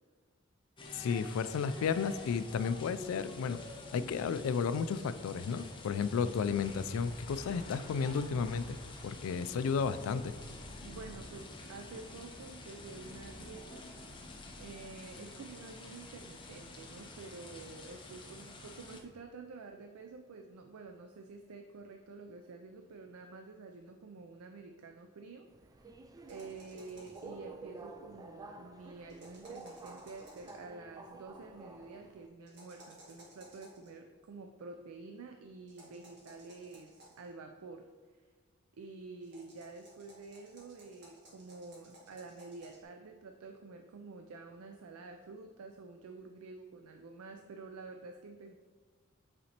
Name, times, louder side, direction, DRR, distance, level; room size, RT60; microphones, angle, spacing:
sound 1, 0.8-19.0, left 2 dB, 25° left, 0.6 m, -48 dB
voice 1, 0.9-3.6 3.9-8.8 9.0-10.3, left 6 dB, 70° left, 14 dB, 0.3 m, -33 dB
voice 2, 10.8-13.9 14.6-25.5 26.2-38.2 38.7-48.5, right 3 dB, 85° right, 5 dB, 0.4 m, -49 dB
Subway metro underground, 25.5-32.3, right 3 dB, 15° right, 0.3 m, -51 dB
sound 2, 26.3-27.4 29.1-30.7 32.5-33.9 35.7-37.3 39.2-42.8, right 1 dB, 55° right, 1.6 m, -58 dB
8.6 x 4.1 x 2.9 m, 1.4 s
head